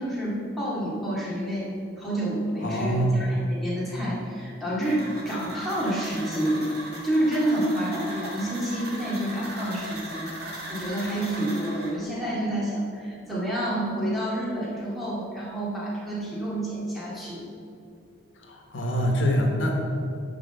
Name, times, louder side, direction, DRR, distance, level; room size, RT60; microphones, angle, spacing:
voice 1, 0.0-6.7 7.0-17.5, right 1 dB, ahead, -8 dB, 2.0 m, -29 dB
voice 2, 2.6-3.2 18.5-19.7, equal, 80° left, 1 dB, 1.2 m, -24 dB
sound 1, 4.8-11.9, right 1 dB, 55° right, 1.8 m, -39 dB
8.1 x 5.0 x 6.7 m, 2.5 s
head